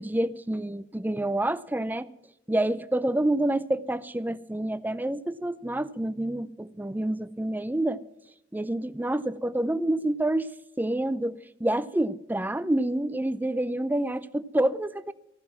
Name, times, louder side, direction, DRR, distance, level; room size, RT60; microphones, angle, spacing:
voice 1, 0.0-2.1 2.5-8.0 8.5-10.5 10.8-15.1, right 1 dB, 10° right, 0.5 m, -28 dB
15.0 x 11.5 x 5.9 m
head